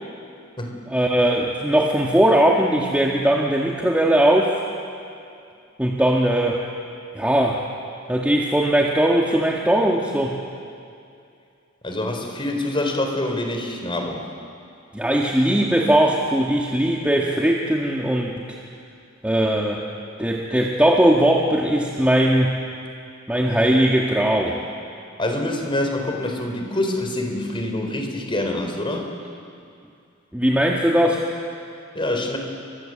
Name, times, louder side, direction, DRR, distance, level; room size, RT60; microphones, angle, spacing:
voice 1, 0.9-4.5 5.8-6.6 7.1-7.7 8.1-10.4 14.9-18.4 19.2-19.9 20.2-22.5 23.3-24.6 30.3-31.3, right 1 dB, 5° right, -2 dB, 1.7 m, -19 dB
voice 2, 11.8-14.2 25.2-29.1 31.9-32.4, left 1 dB, 25° left, 2 dB, 4.2 m, -25 dB
29.5 x 25.0 x 7.8 m, 2.4 s
head